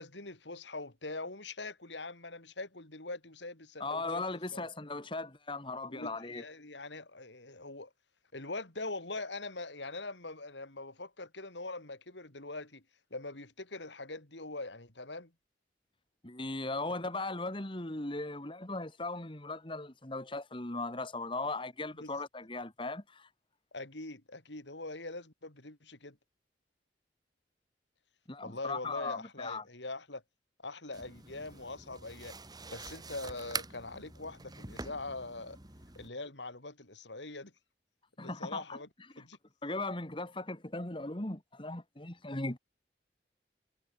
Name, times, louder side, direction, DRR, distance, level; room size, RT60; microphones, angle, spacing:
voice 1, 0.0-4.2 4.5-4.6 5.9-7.9 8.3-12.8 13.1-15.3 22.0-22.1 23.7-26.2 28.4-30.2 30.6-32.4 32.7-35.6 35.9-37.5 38.2-38.9 39.2-39.4, left 2 dB, 80° left, 4.4 m, -43 dB
voice 2, 3.8-6.4 16.2-23.3 28.3-29.6 38.2-38.8 39.2-39.3 39.6-42.6, left 2 dB, 30° left, 2.0 m, -38 dB
taking off headphones and setting them down, 30.9-36.1, right 4 dB, 20° right, 3.3 m, -45 dB
head